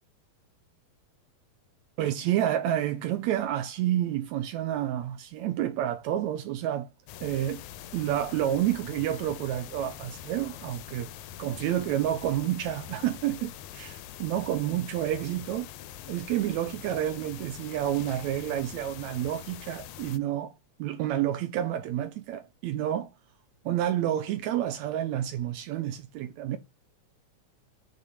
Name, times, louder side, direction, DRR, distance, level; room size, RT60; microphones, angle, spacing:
voice 1, 2.0-6.9 7.2-7.6 7.9-11.1 11.4-15.7 16.1-20.5 20.8-23.1 23.7-26.6, right 12 dB, 80° right, 2.0 m, -29 dB
sound 1, 7.1-20.2, left 11 dB, 85° left, 2.0 m, -44 dB
7.3 x 4.3 x 4.7 m
omnidirectional pair, 3.3 m